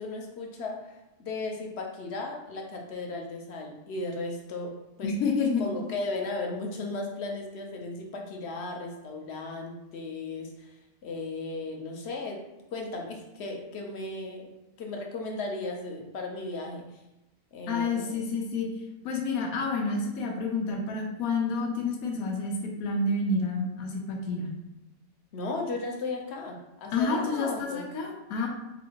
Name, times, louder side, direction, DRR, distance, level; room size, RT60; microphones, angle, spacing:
voice 1, 0.0-5.1 5.6-12.4 12.7-14.5 14.8-17.0 17.5-18.2 25.3-27.9, left 3 dB, 60° left, 1 dB, 0.8 m, -36 dB
voice 2, 5.0-5.8 17.7-18.7 19.0-24.5 26.9-28.5, left 3 dB, 90° left, 1 dB, 1.1 m, -29 dB
4.0 x 2.7 x 2.8 m, 0.95 s
omnidirectional pair, 1.4 m